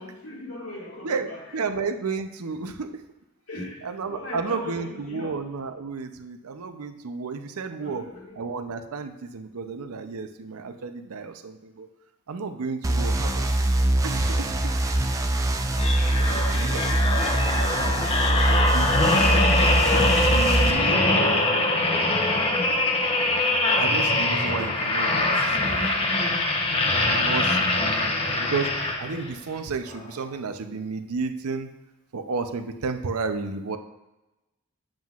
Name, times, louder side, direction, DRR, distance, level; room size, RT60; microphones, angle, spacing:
voice 1, 0.0-1.4 3.5-5.4 7.3-7.4 7.8-8.4 15.1-15.2 16.0-17.3, left 2 dB, 80° left, -4 dB, 2.0 m, -40 dB
voice 2, 1.0-3.0 3.5-8.1 8.3-11.9 12.3-13.5 14.0-14.8 15.8-19.4 19.9-22.2 23.8-26.4 26.9-28.7 29.0-31.7 32.1-33.8, right 4 dB, 85° right, 8 dB, 0.5 m, -33 dB
sound 1, 12.8-20.7, right 1 dB, 15° right, 0.3 m, -23 dB
sound 2, 15.7-29.3 29.9-30.1, left 2 dB, 25° left, 0.7 m, -23 dB
7.5 x 7.4 x 2.4 m, 1.0 s
head